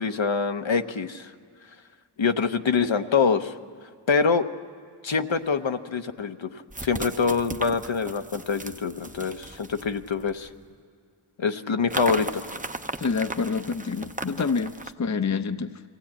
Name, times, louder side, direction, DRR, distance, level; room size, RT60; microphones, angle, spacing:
voice 1, 0.0-1.3 2.2-3.5 4.1-4.5 5.0-10.5 11.4-12.6, left 5 dB, 65° left, 7 dB, 0.9 m, -25 dB
sound 1, 5.3-5.4 6.7-10.6 11.9-14.9, right 2 dB, 15° right, 0.8 m, -37 dB
voice 2, 13.0-14.7 15.0-15.8, left 5 dB, 35° left, 9 dB, 0.7 m, -27 dB
23.0 x 16.0 x 8.7 m, 2.2 s
wide cardioid pair, 50°, 49 cm